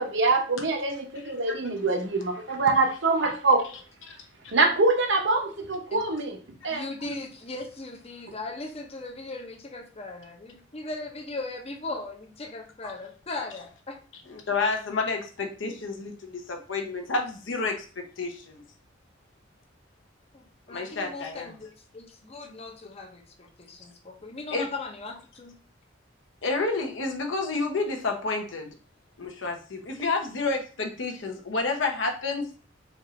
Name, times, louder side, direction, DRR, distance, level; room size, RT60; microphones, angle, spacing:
voice 1, 0.0-3.8 4.5-6.4 6.6-6.8, right 3 dB, 65° right, 4 dB, 0.7 m, -24 dB
voice 2, 6.7-14.0 20.3-25.6 30.0-30.1, left 2 dB, 30° left, 4 dB, 0.6 m, -38 dB
voice 3, 14.3-18.6 20.7-21.6 24.5-24.7 26.4-28.7 29.2-32.5, left 3 dB, 75° left, 3 dB, 0.8 m, -30 dB
4.2 x 2.5 x 3.1 m, 0.38 s
head